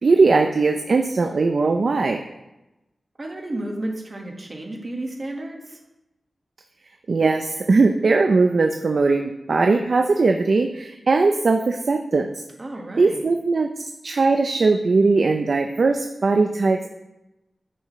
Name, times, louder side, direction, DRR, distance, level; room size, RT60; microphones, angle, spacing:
voice 1, 0.0-2.2 7.1-12.3 13.0-13.7 14.0-16.9, right 3 dB, 60° right, 4 dB, 0.5 m, -19 dB
voice 2, 3.2-5.8 12.6-13.2, right 1 dB, 35° right, 1 dB, 1.6 m, -32 dB
10.0 x 8.6 x 3.2 m, 0.96 s
wide cardioid pair, 115°, 0 cm